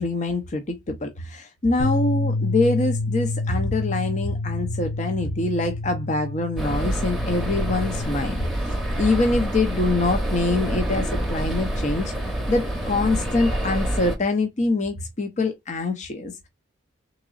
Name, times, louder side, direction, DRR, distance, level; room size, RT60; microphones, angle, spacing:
voice 1, 0.0-12.1 12.5-16.5, left 2 dB, 40° left, 0.5 m, -25 dB
Bass guitar, 1.8-8.0, left 3 dB, 75° left, 1.1 m, -28 dB
sound 1, 6.6-14.2, right 1 dB, ahead, 0.7 m, -27 dB
3.7 x 3.0 x 2.4 m
head